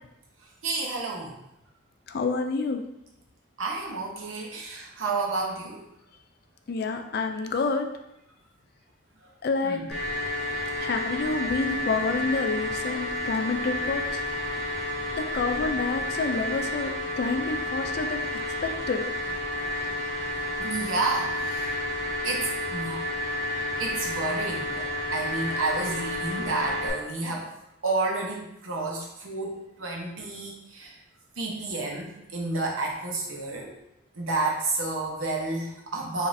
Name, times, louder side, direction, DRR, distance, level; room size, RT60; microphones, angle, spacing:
voice 1, 0.6-1.3 3.6-5.9 9.2-9.3 9.6-9.9 19.5-19.6 20.6-21.8 22.2-23.1 23.8-27.5 27.8-30.9 31.4-33.7 34.2-36.3, right 3 dB, 85° right, -1 dB, 0.8 m, -30 dB
voice 2, 2.1-2.8 6.7-7.9 9.4-9.8 10.8-14.2 15.1-19.0, left 4 dB, 50° left, 5 dB, 0.3 m, -28 dB
sound 1, 9.9-26.9, left 1 dB, ahead, 1.3 m, -31 dB
4.9 x 2.6 x 2.6 m, 0.85 s
head